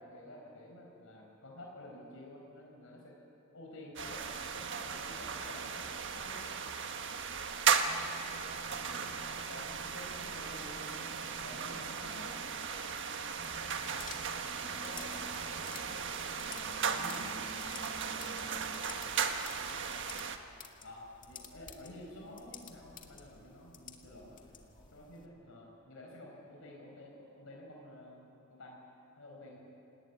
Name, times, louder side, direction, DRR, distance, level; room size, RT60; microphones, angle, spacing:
voice 1, 0.0-3.1 3.5-6.4 8.7-12.5 14.8-15.3 16.9-17.3 20.8-24.4 24.9-28.8 29.2-29.7, left 1 dB, 70° left, -1 dB, 4.7 m, -51 dB
sound 1, 4.0-20.4, right 6 dB, 60° right, 1.5 m, -36 dB
sound 2, 7.6-18.8, right 2 dB, 30° right, 1.6 m, -55 dB
sound 3, 13.5-25.3, left 7 dB, 40° left, 2.0 m, -53 dB
voice 2, 13.9-14.5 15.0-17.1 17.5-18.6 19.0-19.9 24.4-25.8, equal, 25° left, -3 dB, 7.8 m, -60 dB
28.0 x 19.0 x 9.3 m, 2.8 s
head